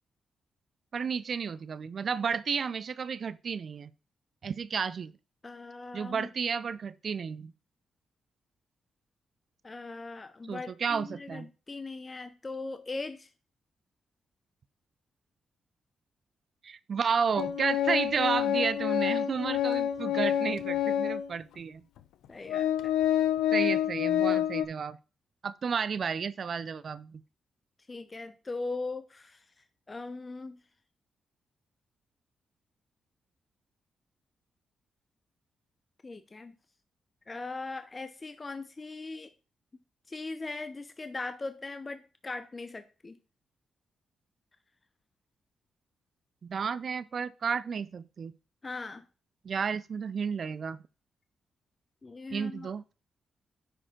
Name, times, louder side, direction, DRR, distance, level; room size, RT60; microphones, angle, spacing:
voice 1, 0.9-3.9 4.4-5.1 5.9-7.5 10.5-11.5 16.6-21.8 23.5-25.0 25.4-27.2 46.4-48.3 49.4-50.8 52.3-52.8, right 6 dB, 60° right, 0.4 m, -32 dB
voice 2, 5.4-6.3 9.6-13.3 22.3-22.9 27.9-29.4 29.9-30.6 36.0-36.6 37.3-39.3 40.1-43.2 48.6-49.0 52.0-52.7, left 3 dB, 35° left, 0.7 m, -39 dB
Organ, 17.4-21.3 22.0-22.1 22.5-24.7, left 10 dB, 80° left, 0.5 m, -28 dB
10.0 x 4.9 x 3.7 m
hypercardioid pair, 45°, 0 cm